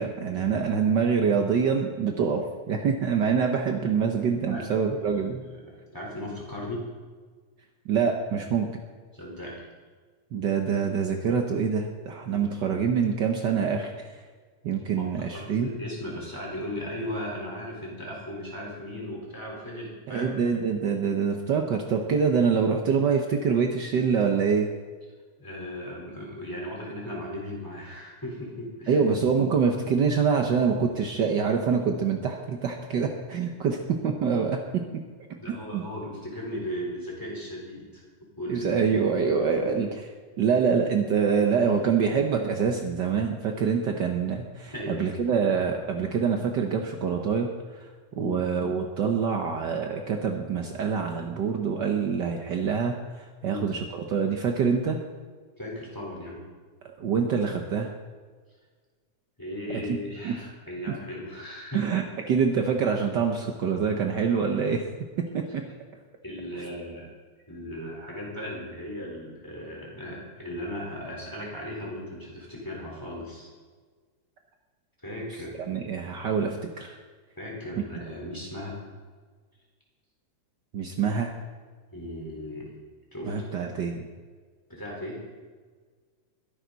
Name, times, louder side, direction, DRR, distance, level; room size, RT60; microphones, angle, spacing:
voice 1, 0.0-5.4 7.8-8.7 10.3-14.1 14.6-15.7 20.1-24.7 28.9-35.0 35.7-35.8 38.5-39.9 40.4-47.9 48.2-55.0 57.0-57.9 59.9-60.0 60.2-60.3 61.7-64.9 65.2-65.6 75.7-77.0 80.7-81.3 83.2-84.1, right 6 dB, 75° right, 3 dB, 1.0 m, -25 dB
voice 2, 5.0-6.9 9.1-9.6 12.3-12.5 15.0-20.3 25.4-29.1 35.4-38.0 38.4-39.8 41.6-41.7 42.3-42.5 44.7-45.1 48.2-48.5 53.4-53.7 55.6-56.4 59.4-61.9 66.2-67.1 67.5-73.5 75.0-76.1 77.4-78.8 81.9-82.7 83.1-83.7 84.7-85.2, left 1 dB, 5° left, -3 dB, 3.9 m, -37 dB
22.0 x 11.0 x 4.1 m, 1.5 s
omnidirectional pair, 3.3 m